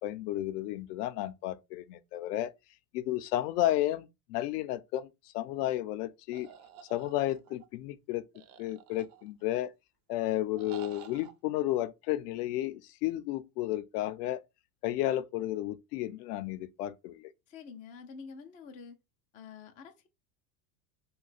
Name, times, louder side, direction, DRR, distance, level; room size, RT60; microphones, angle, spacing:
voice 1, 0.0-2.5 2.9-6.5 6.9-8.2 8.6-9.7 10.1-14.4 14.8-17.3, left 14 dB, 70° left, 0.5 m, -32 dB
sound 1, 6.3-7.7 8.3-9.5 10.6-11.3, right 9 dB, 55° right, 0.7 m, -51 dB
voice 2, 17.5-19.0 19.3-20.1, left 5 dB, 20° left, 0.3 m, -47 dB
2.7 x 2.2 x 3.9 m
supercardioid pair, 110°, 50 cm